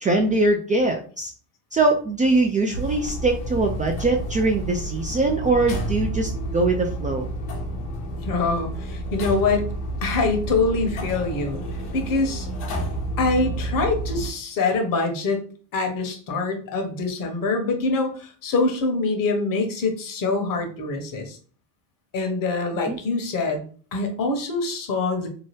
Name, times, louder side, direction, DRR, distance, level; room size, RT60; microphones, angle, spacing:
voice 1, 0.0-1.3 1.7-7.3 22.9-23.0, right 2 dB, 20° right, 2 dB, 0.3 m, -22 dB
sound 1, 2.7-14.3, right 1 dB, 75° left, 1.2 m, -30 dB
voice 2, 8.2-9.7 10.0-11.6 11.9-12.5 13.2-15.4 15.7-21.4 22.1-23.6 23.9-25.3, left 3 dB, 50° left, 4 dB, 1.0 m, -24 dB
2.9 x 2.2 x 3.2 m, 0.42 s
supercardioid pair, 85°, 42 cm